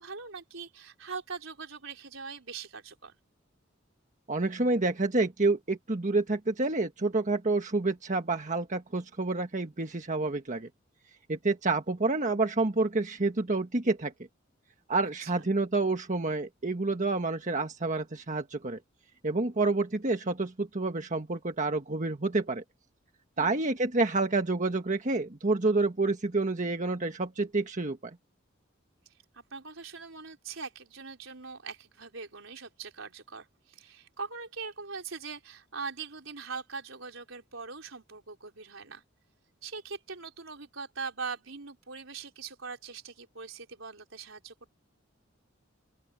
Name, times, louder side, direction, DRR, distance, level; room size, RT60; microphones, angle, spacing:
voice 1, 0.0-3.1 15.2-15.3 23.4-23.7 29.3-39.0 39.6-44.7, right 5 dB, 80° right, 4.4 m, -42 dB
voice 2, 4.3-10.7 11.3-14.1 14.9-18.8 19.2-22.6 23.4-28.2, right 3 dB, 40° right, 1.4 m, -28 dB
open air
head